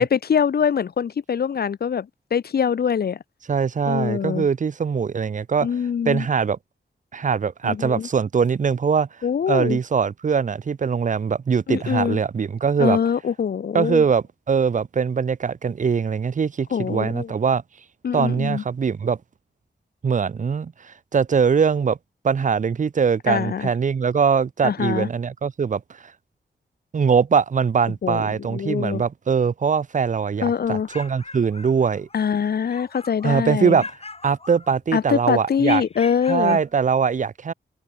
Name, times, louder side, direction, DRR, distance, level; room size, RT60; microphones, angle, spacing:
voice 1, 0.0-3.2 3.9-4.5 5.6-6.3 7.6-8.1 9.2-9.8 11.7-12.2 12.8-14.0 16.7-17.3 18.0-18.6 23.3-23.7 24.6-25.1 28.0-29.0 30.4-30.9 32.1-33.8 34.9-36.6, left 7 dB, 60° left, 0.5 m, -23 dB
voice 2, 3.5-5.7 6.1-6.6 7.1-9.1 9.5-13.0 13.7-17.6 18.1-19.2 20.0-22.0 22.2-25.8 26.9-32.1 33.2-33.9 34.2-35.8 36.3-37.5, right 6 dB, 45° right, 0.5 m, -22 dB
sound 1, 30.6-32.3 32.6-33.4 33.8-35.0 35.6-36.7, left 3 dB, 35° left, 2.4 m, -40 dB
wide cardioid pair, 90°, 19 cm